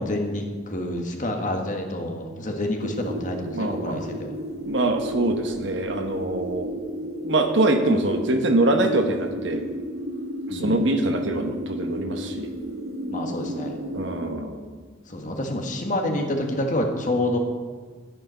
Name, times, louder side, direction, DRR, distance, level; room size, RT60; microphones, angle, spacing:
voice 1, 0.0-4.4 10.5-10.8 13.1-13.8 15.1-17.4, left 1 dB, 40° left, 2 dB, 1.6 m, -28 dB
sound 1, 2.8-14.4, equal, 85° right, 1.4 m, -33 dB
voice 2, 3.5-4.0 4.7-9.6 10.5-12.5 13.9-14.7, right 2 dB, 65° right, 5 dB, 1.2 m, -24 dB
10.5 x 9.9 x 5.6 m, 1.5 s
head